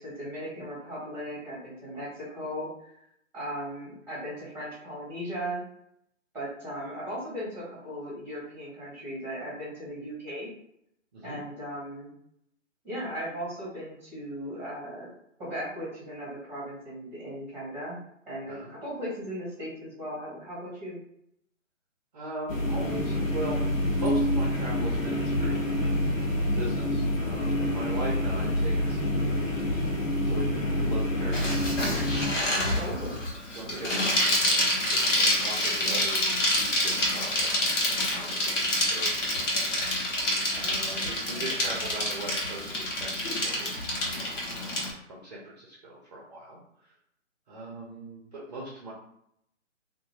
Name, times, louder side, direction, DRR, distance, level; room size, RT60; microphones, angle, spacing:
voice 1, 0.0-2.9 3.3-5.6 6.3-10.5 11.2-12.1 12.8-15.1 15.4-18.0 18.3-21.0 32.7-33.2 40.5-41.6, equal, 5° right, -8 dB, 1.1 m, -37 dB
voice 2, 11.1-11.4 18.5-18.7 22.1-23.7 23.9-29.8 30.2-31.6 32.3-33.1 33.5-34.6 34.9-39.9 40.6-43.8 44.1-44.6 45.1-46.6 47.5-48.9, right 1 dB, 35° right, -4 dB, 0.6 m, -40 dB
sound 1, 22.5-32.3, left 1 dB, 85° left, 0.9 m, -27 dB
Bicycle, 31.3-44.9, left 1 dB, 65° left, 1.2 m, -27 dB
2.7 x 2.5 x 2.8 m, 0.75 s
figure-of-eight pair, 145°, 39 cm